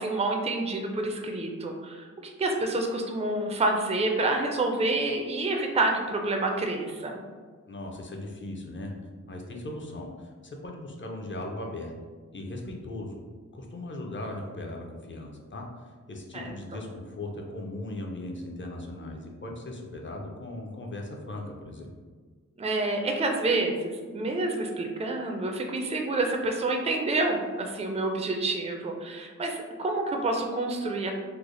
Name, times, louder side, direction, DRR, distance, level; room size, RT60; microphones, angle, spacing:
voice 1, 0.0-7.2 16.3-16.5 22.6-31.2, right 2 dB, 20° right, 2 dB, 0.4 m, -28 dB
voice 2, 7.7-9.0 9.3-11.9 12.3-13.2 13.5-15.6 16.1-21.9, left 1 dB, 40° left, 0 dB, 0.6 m, -38 dB
3.3 x 2.1 x 3.7 m, 1.5 s
wide cardioid pair, 85°, 31 cm